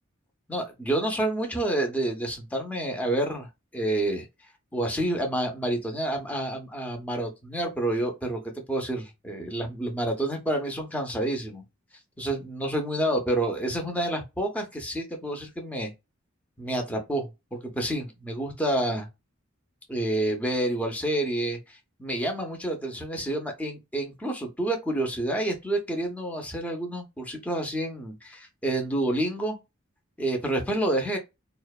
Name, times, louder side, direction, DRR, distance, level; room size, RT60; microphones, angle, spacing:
voice 1, 0.5-3.5 3.7-4.3 4.7-8.4 8.7-11.6 12.2-15.9 16.6-19.1 19.9-29.6 30.2-31.2, right 1 dB, 5° left, 0.5 m, -29 dB
2.6 x 2.1 x 2.3 m
head